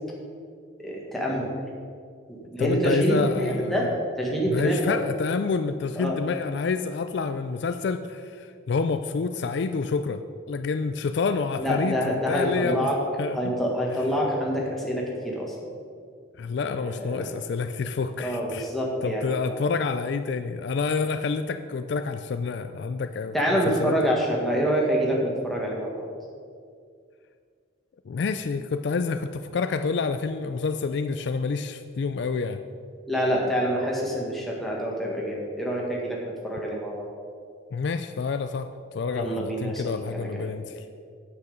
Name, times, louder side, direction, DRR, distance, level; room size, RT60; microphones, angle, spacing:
voice 1, 0.8-1.5 2.3-3.9 4.2-4.9 6.0-6.1 11.6-13.0 13.3-15.5 16.8-17.3 18.2-19.6 23.3-26.0 33.1-36.2 36.4-37.1 39.1-40.4, equal, ahead, -3 dB, 1.5 m, -26 dB
voice 2, 2.6-3.9 4.5-10.2 10.5-12.9 13.2-13.4 13.9-14.0 16.4-18.7 19.0-24.1 28.1-32.6 37.7-40.8, left 4 dB, 55° left, 9 dB, 0.3 m, -28 dB
8.3 x 8.1 x 5.2 m, 2.2 s
head